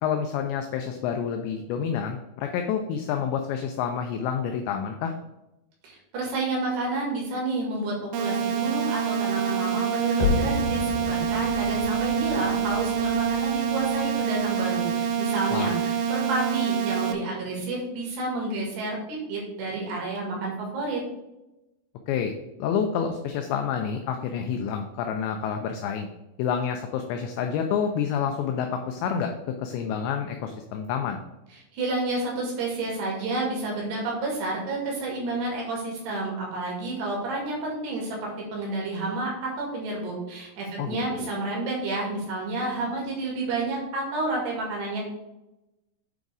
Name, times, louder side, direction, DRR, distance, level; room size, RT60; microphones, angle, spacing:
voice 1, 0.0-5.1 15.5-15.7 22.1-22.3 22.6-26.1 26.4-31.2 40.8-41.3, left 7 dB, 85° left, 5 dB, 2.5 m, -28 dB
voice 2, 5.8-21.0 31.7-45.0, right 2 dB, 60° right, -2 dB, 3.7 m, -30 dB
sound 1, 8.1-17.1, right 7 dB, 85° right, 2.5 m, -26 dB
sound 2, 10.2-15.1 15.4-15.5, left 5 dB, 60° left, 3.6 m, -32 dB
8.2 x 4.0 x 4.8 m, 0.96 s
omnidirectional pair, 5.7 m